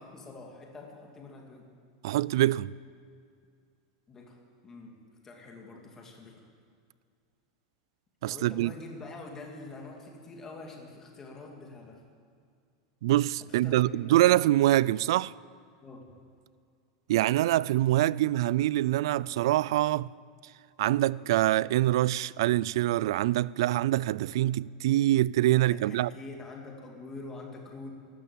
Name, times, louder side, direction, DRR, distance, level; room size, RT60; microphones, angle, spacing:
voice 1, 0.0-1.7 4.1-5.0 5.2-6.4 8.3-12.0 13.5-14.4 15.8-16.1 25.6-27.9, left 3 dB, 15° left, 2.4 m, -45 dB
voice 2, 2.0-2.7 8.2-8.7 13.0-15.3 17.1-20.1 20.8-26.1, right 15 dB, 75° right, 0.3 m, -25 dB
14.0 x 12.5 x 8.5 m
supercardioid pair, 160°, 3 cm